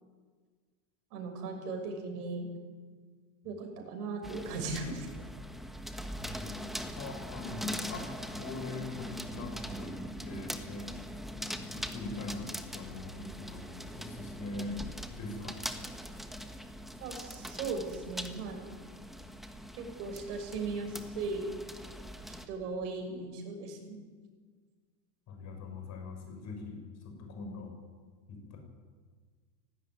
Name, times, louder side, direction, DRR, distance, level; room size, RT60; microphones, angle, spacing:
voice 1, 1.1-2.5 3.4-5.1 17.0-18.7 19.8-21.5 22.3-24.1, right 3 dB, 75° right, 4 dB, 6.7 m, -38 dB
sound 1, 4.2-22.5, equal, ahead, 1.3 m, -42 dB
voice 2, 6.2-6.6 6.9-10.9 11.7-13.7 14.0-14.8 15.1-15.6 25.3-27.7 28.3-28.6, left 3 dB, 35° left, 3 dB, 6.1 m, -42 dB
18.0 x 17.0 x 9.7 m, 1.5 s
supercardioid pair, 140°, 46 cm